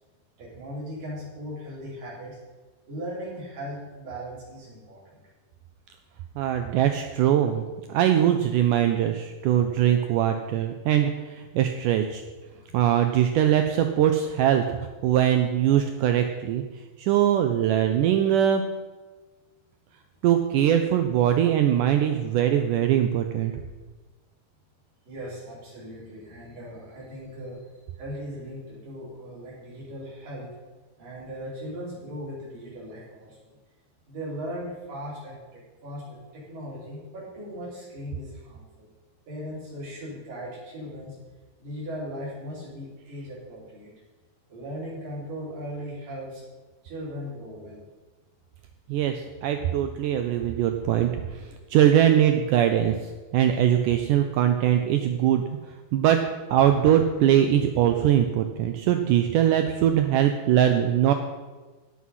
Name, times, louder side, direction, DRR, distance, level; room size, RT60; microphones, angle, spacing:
voice 1, 0.4-2.4 2.9-5.2 12.7-13.0 25.1-30.6 31.0-33.6 34.1-38.9 39.3-41.2 41.6-43.9 44.5-46.4 46.8-47.9, equal, 60° right, -7 dB, 6.0 m, -38 dB
voice 2, 6.4-7.6 7.9-12.2 12.7-14.8 15.0-16.6 17.0-18.6 20.2-23.5 48.9-55.4 55.9-56.2 56.5-61.1, right 10 dB, 85° right, 6 dB, 1.8 m, -22 dB
17.0 x 6.3 x 5.6 m, 1.3 s
omnidirectional pair, 4.5 m